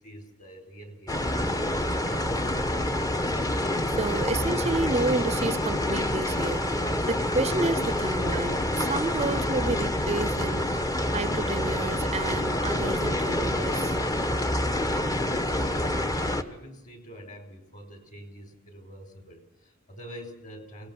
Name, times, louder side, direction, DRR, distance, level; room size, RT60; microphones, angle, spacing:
voice 1, 0.0-1.7 14.4-20.9, equal, 40° left, 4.5 m, -46 dB
sound 1, 1.1-16.4, left 1 dB, 20° left, 1.1 m, -27 dB
voice 2, 3.9-14.0, right 3 dB, 35° right, 0.7 m, -30 dB
24.5 x 19.0 x 6.1 m
head